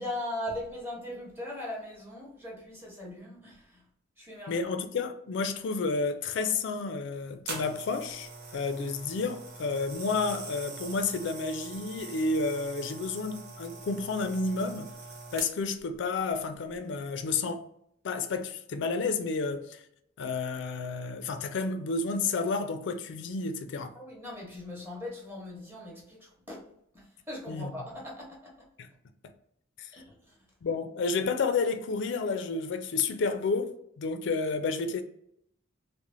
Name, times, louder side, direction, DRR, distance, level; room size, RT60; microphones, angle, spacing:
voice 1, 0.0-3.8 4.2-4.7 23.9-26.7 26.9-28.5 29.9-30.4, left 1 dB, 10° right, 0.8 m, -39 dB
voice 2, 4.5-14.9 15.3-17.6 18.0-19.8 20.2-23.9 27.5-27.7 28.8-28.9 29.8-29.9 30.6-35.0, left 4 dB, 60° left, 0.3 m, -31 dB
sound 1, 7.5-15.8 16.5-16.7, right 3 dB, 55° right, 0.6 m, -43 dB
3.0 x 2.1 x 2.5 m
head